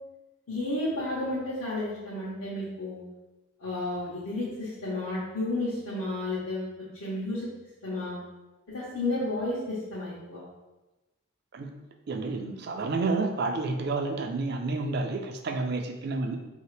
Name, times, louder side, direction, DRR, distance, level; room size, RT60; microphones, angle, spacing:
voice 1, 0.5-3.0 3.6-7.5 7.8-8.2 8.7-10.4, left 2 dB, 80° left, -9 dB, 1.0 m, -32 dB
voice 2, 12.1-16.4, right 3 dB, 50° right, 5 dB, 0.4 m, -30 dB
4.6 x 2.8 x 3.3 m, 1.1 s
head